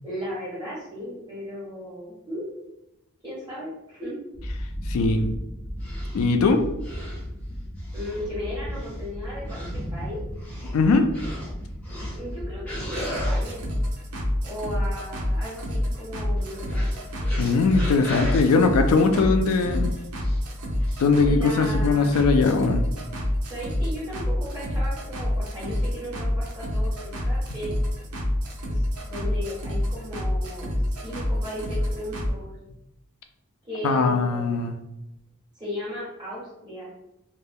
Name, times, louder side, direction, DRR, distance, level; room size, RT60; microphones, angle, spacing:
voice 1, 0.0-2.5 3.2-4.1 7.9-10.2 12.1-13.7 14.4-16.9 21.2-22.2 23.4-27.7 28.7-30.7 31.0-32.5 33.6-34.6 35.5-36.9, equal, 20° right, -8 dB, 1.3 m, -36 dB
sound 1, 4.3-13.8, equal, 30° left, 0.6 m, -35 dB
voice 2, 4.9-5.3 6.1-6.6 10.7-11.1 17.4-19.9 21.0-22.8 33.8-34.7, left 4 dB, 75° left, 6 dB, 0.3 m, -20 dB
sound 2, 5.8-6.2 6.8-7.2 7.8-8.3 8.7-9.0 9.5-9.8 10.4-10.8 11.1-11.5 11.8-12.4 12.7-13.4 16.4-18.4 19.5-19.7 20.2-20.4 20.8-21.0, equal, 5° left, 1.1 m, -37 dB
sound 3, 12.9-32.3, left 1 dB, 85° right, 0.6 m, -27 dB
2.4 x 2.1 x 3.4 m, 0.90 s
head